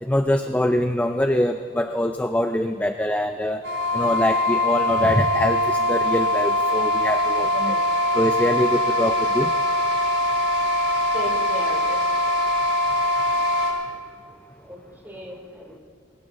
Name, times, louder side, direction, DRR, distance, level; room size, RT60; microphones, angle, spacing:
voice 1, 0.0-3.6 3.9-7.8 8.1-9.5, left 1 dB, 10° left, 7 dB, 0.4 m, -23 dB
sound 1, 3.6-13.7, left 1 dB, 70° right, 4.0 m, -22 dB
voice 2, 11.1-12.0 14.6-14.8 15.0-15.7, equal, 10° right, -1 dB, 2.9 m, -36 dB
20.5 x 18.0 x 3.8 m, 2.1 s
head